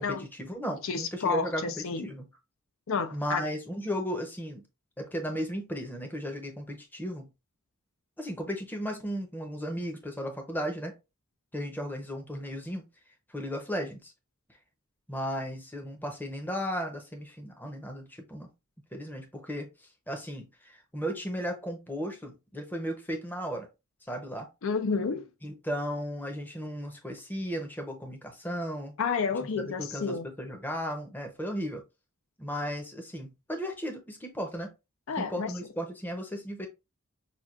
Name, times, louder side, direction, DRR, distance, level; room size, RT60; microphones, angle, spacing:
voice 1, 0.0-2.3 3.1-4.6 5.0-7.3 8.2-10.9 11.5-12.8 13.3-14.1 15.1-18.5 18.9-19.7 20.1-23.7 24.0-24.5 25.4-29.0 29.4-31.8 32.4-34.7 35.2-36.7, equal, 10° left, 0.7 m, -35 dB
voice 2, 0.8-2.1 2.9-3.4 24.6-25.3 29.0-30.3 35.1-35.5, left 5 dB, 65° left, 0.5 m, -30 dB
5.8 x 2.3 x 2.4 m
head